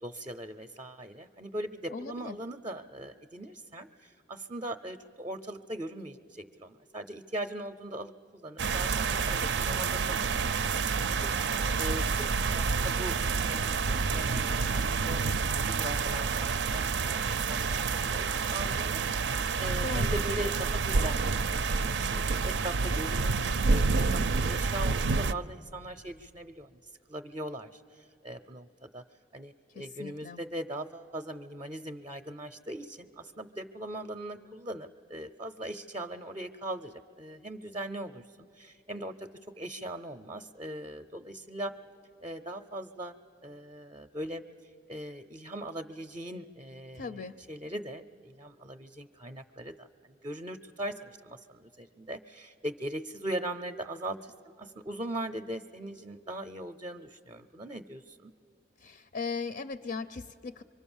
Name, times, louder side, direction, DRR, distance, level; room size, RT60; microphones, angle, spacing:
voice 1, 0.0-10.6 11.1-21.8 22.4-23.4 23.7-24.2 24.5-26.8 27.1-29.0 29.3-38.2 38.6-39.3 39.6-41.7 42.2-43.1 43.4-44.4 44.9-54.3 54.6-58.3, right 1 dB, 25° right, 7 dB, 0.5 m, -40 dB
voice 2, 1.9-2.4 19.8-20.2 29.7-30.4 46.9-47.3 58.8-60.6, left 4 dB, 60° left, 11 dB, 0.5 m, -38 dB
sound 1, 8.6-25.3, right 4 dB, 80° right, 0.5 m, -28 dB
24.5 x 24.0 x 7.2 m, 2.3 s
head